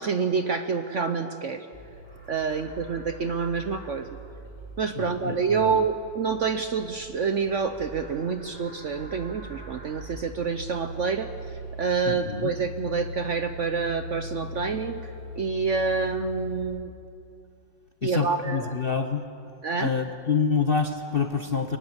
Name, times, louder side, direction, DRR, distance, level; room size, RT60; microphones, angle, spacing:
voice 1, 0.0-1.7 2.3-4.2 4.8-15.0 15.4-16.9 18.0-18.7 19.6-19.9, right 5 dB, 55° right, 8 dB, 0.9 m, -27 dB
Livestock farm animals working animals, 1.7-16.6, left 1 dB, 30° right, 6.4 m, -41 dB
voice 2, 4.9-5.8 12.1-12.5 18.0-19.2 19.8-21.8, left 5 dB, 45° left, 6 dB, 0.7 m, -27 dB
22.0 x 19.5 x 8.1 m, 2.7 s
omnidirectional pair, 2.0 m